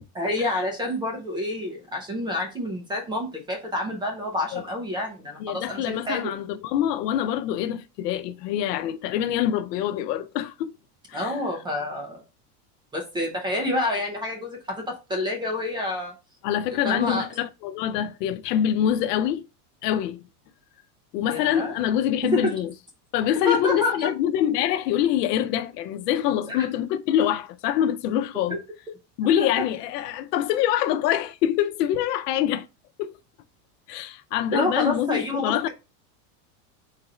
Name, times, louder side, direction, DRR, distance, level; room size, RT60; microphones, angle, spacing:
voice 1, 0.1-6.3 11.1-12.2 12.9-16.1 16.8-17.3 21.3-21.7 22.3-22.6 23.5-24.1 26.5-26.7 29.4-29.6 34.5-35.7, left 1 dB, 10° right, 0.4 m, -28 dB
voice 2, 5.4-10.7 11.1-11.4 16.4-19.4 19.8-20.2 21.1-22.7 23.1-28.6 29.2-32.7 33.0-33.1 33.9-35.7, left 10 dB, 90° left, 0.6 m, -25 dB
4.0 x 2.5 x 4.1 m
supercardioid pair, 155°, 46 cm